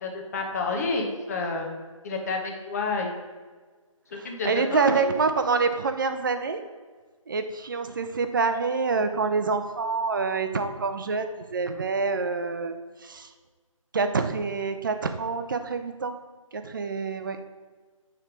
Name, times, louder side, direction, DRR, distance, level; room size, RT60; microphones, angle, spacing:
voice 1, 0.0-1.7 2.0-3.1 4.2-5.0, left 3 dB, 30° left, 1 dB, 1.0 m, -29 dB
voice 2, 4.1-6.6 7.3-12.8 13.0-13.3 13.9-16.2 16.5-17.4, right 4 dB, 40° right, 8 dB, 0.5 m, -26 dB
9.1 x 3.4 x 5.2 m, 1.4 s
figure-of-eight pair, 155°, 18 cm